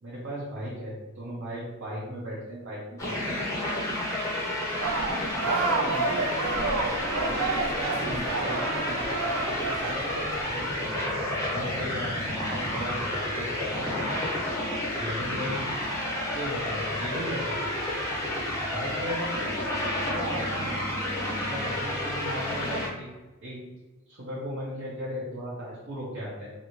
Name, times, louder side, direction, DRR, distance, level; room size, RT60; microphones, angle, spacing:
voice 1, 0.0-3.4 11.4-14.3 15.0-15.8 16.3-17.6 18.7-19.5 20.0-20.7 21.4-23.1 23.4-23.6 24.1-26.5, equal, 65° right, -7 dB, 0.8 m, -36 dB
sound 1, 3.0-22.9, left 1 dB, 15° left, 0.6 m, -30 dB
sound 2, 4.8-10.4, right 3 dB, 85° right, 0.4 m, -30 dB
voice 2, 5.4-11.2, equal, 25° right, -7 dB, 0.9 m, -39 dB
2.6 x 2.6 x 2.9 m, 1.2 s
head